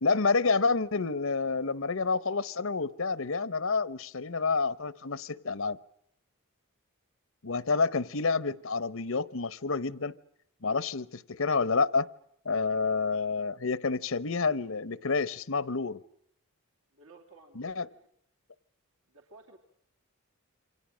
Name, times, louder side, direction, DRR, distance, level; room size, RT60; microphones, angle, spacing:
voice 1, 0.0-5.8 7.4-10.1 10.6-12.1 12.4-16.0 17.6-17.9, left 4 dB, 65° left, 0.9 m, -29 dB
voice 2, 16.9-18.1 19.1-19.6, right 3 dB, 70° right, 2.7 m, -56 dB
28.5 x 25.0 x 6.3 m
head